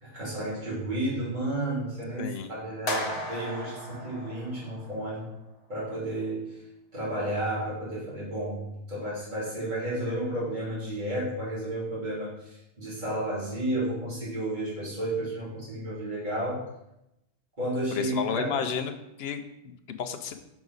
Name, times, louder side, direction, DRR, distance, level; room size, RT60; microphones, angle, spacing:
voice 1, 0.0-5.3 5.7-6.5 6.9-16.6 17.6-18.6, right 1 dB, 45° right, -9 dB, 3.0 m, -32 dB
voice 2, 2.2-2.5 17.9-18.9 19.2-20.4, left 7 dB, 70° left, 8 dB, 0.9 m, -32 dB
sound 1, 2.9-5.1, left 1 dB, 40° left, 1.1 m, -35 dB
6.0 x 6.0 x 3.9 m, 0.87 s
omnidirectional pair, 1.1 m